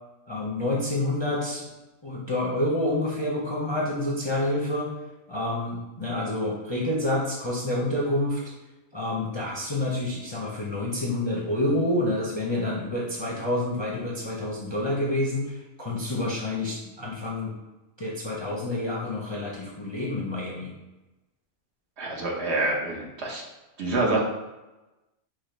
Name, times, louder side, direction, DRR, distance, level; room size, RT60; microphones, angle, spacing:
voice 1, 0.3-1.7 2.0-4.9 5.3-8.4 8.9-17.5 18.0-20.7, left 1 dB, 30° left, -4 dB, 0.5 m, -28 dB
voice 2, 22.0-23.4 23.8-24.2, right 2 dB, 65° right, -2 dB, 1.2 m, -26 dB
4.9 x 2.0 x 4.4 m, 1.1 s
omnidirectional pair, 1.3 m